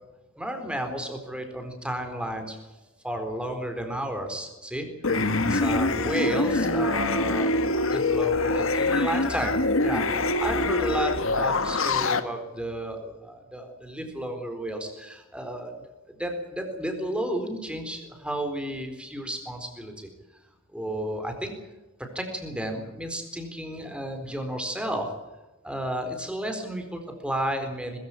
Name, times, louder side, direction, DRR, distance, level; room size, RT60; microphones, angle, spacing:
voice 1, 0.3-2.6 3.0-10.0 10.4-15.7 16.1-20.1 20.7-21.5 22.0-25.1 25.6-28.0, right 1 dB, 5° right, 5 dB, 4.1 m, -32 dB
sound 1, 5.0-12.2, left 2 dB, 80° left, 1.7 m, -24 dB
21.5 x 15.0 x 9.9 m, 1.0 s
head